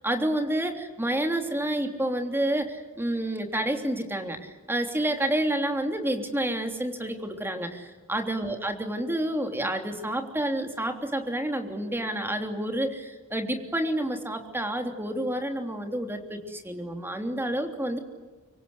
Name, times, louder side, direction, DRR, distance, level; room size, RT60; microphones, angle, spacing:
voice 1, 0.0-18.0, right 1 dB, 10° right, 5 dB, 3.2 m, -29 dB
25.5 x 24.0 x 9.7 m, 1.3 s
head